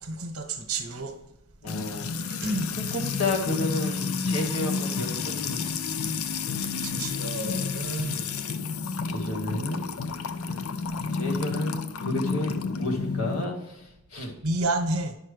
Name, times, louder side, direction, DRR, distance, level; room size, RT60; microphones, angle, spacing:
voice 1, 0.0-1.2 2.3-2.7 6.8-8.3 14.4-15.1, right 2 dB, 80° right, 1.1 m, -30 dB
voice 2, 1.6-2.1 2.8-5.7 8.2-8.3 9.1-9.9 11.1-13.5 14.1-14.3, left 2 dB, 90° left, 1.8 m, -31 dB
Music / Water tap faucet / Trickle dribble, 1.7-13.4, left 5 dB, 70° left, 0.5 m, -30 dB
9.9 x 5.7 x 3.3 m
head